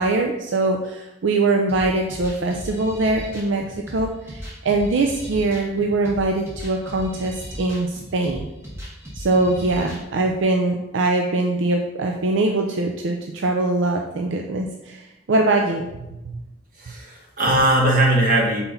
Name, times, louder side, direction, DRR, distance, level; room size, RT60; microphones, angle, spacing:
voice 1, 0.0-8.5 9.2-15.9 16.3-16.4, right 2 dB, 75° right, 2 dB, 0.5 m, -22 dB
sound 1, 1.7-10.3, equal, 15° right, 1.4 m, -37 dB
voice 2, 16.8-18.6, right 1 dB, 45° right, -2 dB, 1.4 m, -19 dB
5.9 x 4.2 x 3.9 m, 0.99 s
head